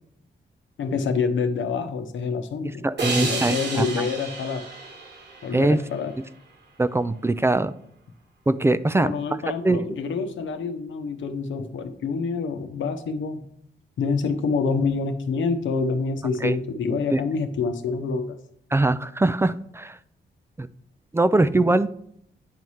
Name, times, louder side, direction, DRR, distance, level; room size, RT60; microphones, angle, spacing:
voice 1, 0.8-4.7 5.4-6.1 8.9-13.4 14.0-18.4, left 4 dB, 85° left, 7 dB, 0.9 m, -27 dB
voice 2, 2.8-4.1 5.5-5.8 6.8-7.7 8.5-9.1 9.6-9.9 16.4-16.5 17.1-17.2 18.7-20.0 20.6-20.7 21.1-21.9, right 2 dB, 15° right, 13 dB, 0.3 m, -22 dB
sound 1, 3.0-6.3, right 3 dB, 65° right, 1.5 m, -32 dB
9.0 x 3.2 x 5.5 m, 0.69 s
cardioid pair, 95°, 19 cm